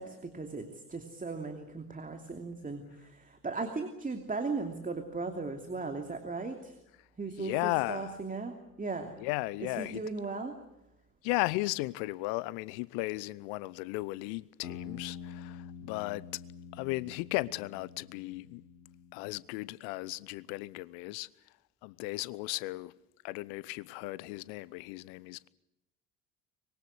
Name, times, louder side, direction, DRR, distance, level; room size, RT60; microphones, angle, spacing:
voice 1, 0.0-6.8 7.2-9.2 9.6-10.5, right 3 dB, 20° right, 2.8 m, -37 dB
voice 2, 7.4-8.2 9.2-10.0 11.2-16.3 16.7-18.6 19.1-21.3 21.8-22.9 23.2-25.5, left 21 dB, 60° left, 0.9 m, -35 dB
sound 1, 14.6-19.3, left 7 dB, 75° left, 2.9 m, -46 dB
25.0 x 22.5 x 8.4 m
figure-of-eight pair, 60°, 43 cm